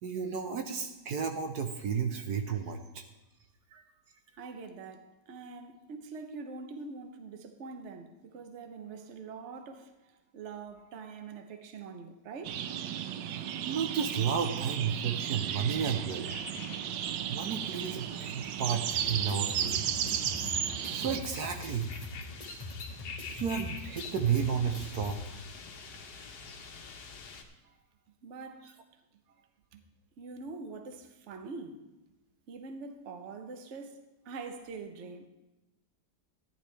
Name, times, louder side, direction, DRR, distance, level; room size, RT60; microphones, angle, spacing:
voice 1, 0.0-3.0 3.7-3.8 13.7-16.3 17.3-20.1 20.9-21.9 23.3-25.2, right 7 dB, 70° right, 1.3 m, -32 dB
voice 2, 4.4-12.6 27.6-27.8 28.2-28.7 29.4-29.8 30.2-31.8 32.5-35.3, right 4 dB, 50° right, 1.1 m, -44 dB
sound 1, 12.4-21.2, right 9 dB, 85° right, 1.3 m, -34 dB
sound 2, 16.1-27.4, left 5 dB, 65° left, 1.6 m, -47 dB
sound 3, 18.9-25.1, left 2 dB, 25° left, 1.4 m, -43 dB
14.0 x 10.5 x 3.3 m
omnidirectional pair, 1.9 m